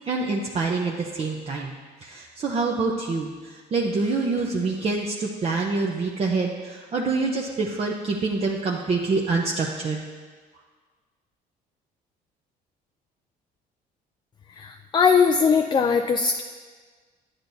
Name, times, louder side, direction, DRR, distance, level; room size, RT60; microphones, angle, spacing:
voice 1, 0.1-1.7 2.0-10.0, right 3 dB, 35° right, -1 dB, 0.7 m, -26 dB
voice 2, 14.6-16.4, left 5 dB, 25° left, 6 dB, 0.4 m, -20 dB
10.0 x 8.8 x 2.7 m, 1.5 s
cardioid pair, 110°, 17 cm